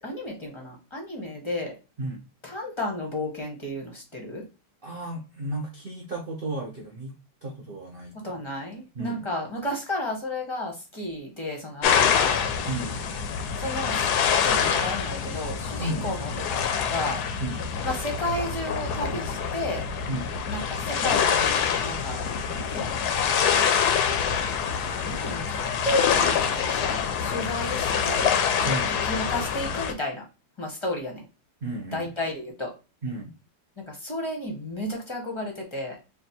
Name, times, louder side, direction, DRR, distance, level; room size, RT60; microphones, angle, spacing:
voice 1, 0.0-1.7 2.4-4.4 8.1-12.3 13.6-14.1 14.4-17.2 17.8-19.8 20.5-21.5 21.8-23.1 25.0-30.2 30.6-31.2 31.9-32.7 33.9-36.0, left 1 dB, 20° left, 0 dB, 0.9 m, -32 dB
voice 2, 4.8-7.2 7.4-8.3 8.9-9.2 12.7-13.0 15.8-16.1 17.4-17.6 20.1-20.3 28.6-28.9 31.6-32.1 33.0-33.3, right 2 dB, 65° right, 0 dB, 0.5 m, -33 dB
sound 1, 11.8-29.9, left 7 dB, 70° left, 1.1 m, -26 dB
3.3 x 2.5 x 4.1 m, 0.30 s
omnidirectional pair, 2.0 m